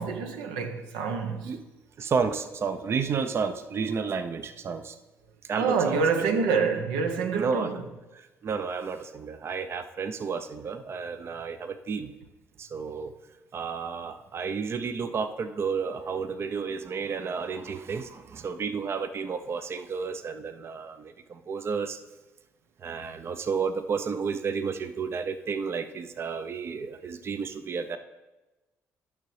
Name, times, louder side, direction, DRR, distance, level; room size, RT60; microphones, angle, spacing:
voice 1, 0.0-1.6 5.6-7.8, right 5 dB, 90° right, 0.7 m, -27 dB
voice 2, 2.0-5.0 5.5-6.0 6.3-6.4 7.4-7.7 8.1-12.1 12.6-13.1 13.5-22.0 22.8-28.0, right 5 dB, 45° right, 0.4 m, -31 dB
12.0 x 6.0 x 3.2 m
supercardioid pair, 70°, 6 cm